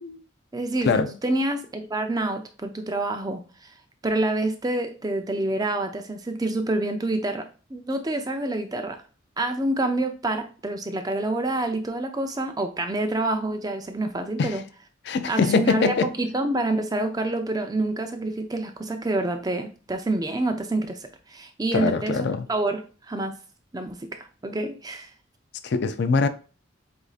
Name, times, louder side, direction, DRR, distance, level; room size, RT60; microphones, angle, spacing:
voice 1, 0.5-3.7 4.0-9.0 9.4-14.6 15.3-21.0 21.3-23.4 23.7-25.1, right 2 dB, 20° right, 0.5 m, -27 dB
voice 2, 15.1-16.1 21.7-22.5 25.6-26.3, left 4 dB, 55° left, 0.4 m, -23 dB
7.9 x 2.7 x 2.4 m
head